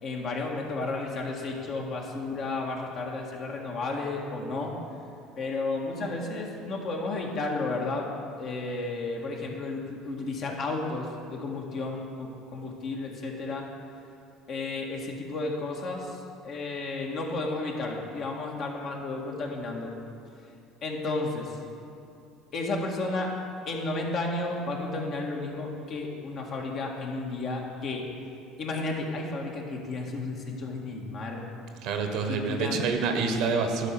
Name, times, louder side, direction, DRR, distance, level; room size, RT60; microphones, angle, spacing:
voice 1, 0.0-4.7 5.4-8.1 8.4-13.7 14.5-19.9 20.8-21.6 22.5-23.3 23.7-28.1 28.6-31.5 32.3-32.8, left 3 dB, 50° left, 0 dB, 1.7 m, -32 dB
voice 2, 31.8-33.9, right 4 dB, 65° right, 5 dB, 1.1 m, -27 dB
11.0 x 4.9 x 6.9 m, 2.5 s
hypercardioid pair, 70°, 0 cm